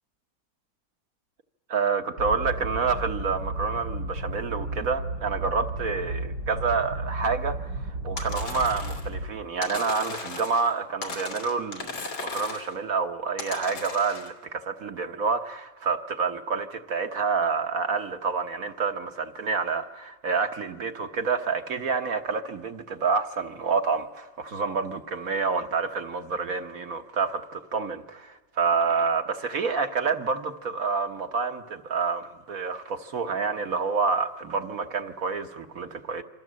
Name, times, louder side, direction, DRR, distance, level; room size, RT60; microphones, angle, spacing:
voice 1, 1.7-36.2, right 5 dB, 50° right, 1.5 m, -28 dB
sound 1, 2.2-9.3, right 2 dB, 80° right, 6.8 m, -33 dB
sound 2, 8.2-9.1 9.6-10.7 11.0-12.7 13.4-14.3, left 4 dB, 85° left, 3.5 m, -36 dB
27.0 x 25.5 x 7.6 m
omnidirectional pair, 2.0 m